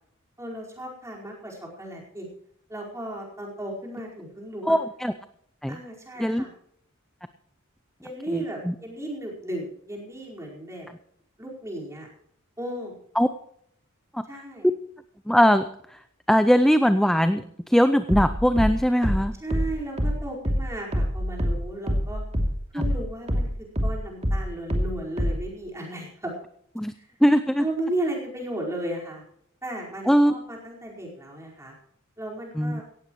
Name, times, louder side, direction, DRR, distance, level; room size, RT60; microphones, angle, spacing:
voice 1, 0.4-2.3 2.7-4.8 5.7-6.5 8.0-10.9 11.4-12.1 12.6-12.9 14.2-14.7 19.4-22.2 22.7-26.3 27.0-27.1 27.6-29.2 29.6-31.8 32.2-32.8, right 1 dB, 15° right, -2 dB, 4.7 m, -35 dB
voice 2, 4.7-5.1 5.6-5.8 6.2-6.4 8.3-8.7 13.2-13.3 14.1-14.2 15.3-15.7 16.3-19.3 26.8-26.9 27.2-27.6 30.1-30.3 32.6-32.8, equal, ahead, 10 dB, 0.5 m, -20 dB
sound 1, 18.1-23.0 23.3-25.5, equal, 30° right, 2.8 m, -25 dB
17.5 x 15.5 x 3.1 m, 0.67 s
head